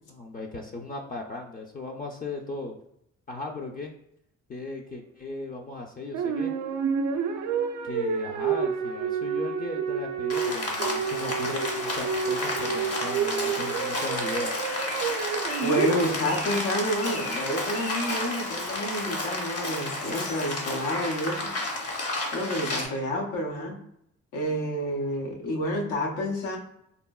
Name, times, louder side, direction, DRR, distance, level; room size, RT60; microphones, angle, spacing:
voice 1, 0.1-2.8 3.3-4.0 4.5-6.6 7.8-14.5, left 2 dB, 30° left, 1 dB, 0.4 m, -37 dB
sound 1, 6.1-16.6, right 6 dB, 75° right, 0.5 m, -29 dB
Rain, 10.3-22.9, left 2 dB, 50° left, 0.9 m, -31 dB
voice 2, 15.6-21.5 22.3-23.8 24.3-26.6, equal, 90° left, 1 dB, 0.8 m, -29 dB
3.9 x 2.0 x 2.2 m, 0.75 s
cardioid pair, 90°, 30 cm